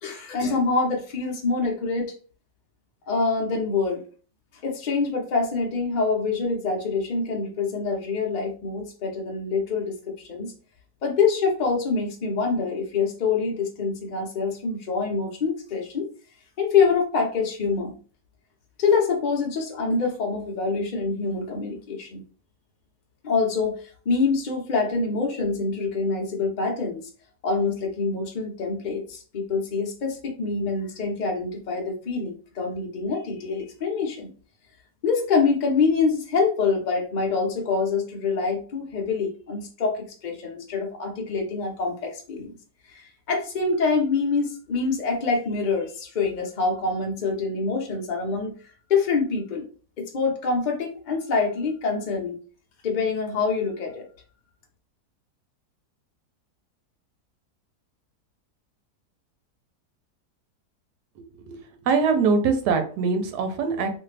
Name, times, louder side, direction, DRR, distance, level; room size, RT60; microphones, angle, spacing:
voice 1, 0.0-2.1 3.1-4.0 4.6-10.5 11.0-16.1 16.6-18.0 18.8-22.2 23.2-27.0 27.4-34.3 35.0-42.6 42.9-48.6 48.9-49.7 50.0-52.4 52.8-54.0, left 4 dB, 80° left, 1 dB, 0.4 m, -25 dB
voice 2, 61.8-63.9, right 5 dB, 85° right, 6 dB, 1.2 m, -22 dB
2.6 x 2.5 x 3.2 m, 0.40 s
omnidirectional pair, 1.7 m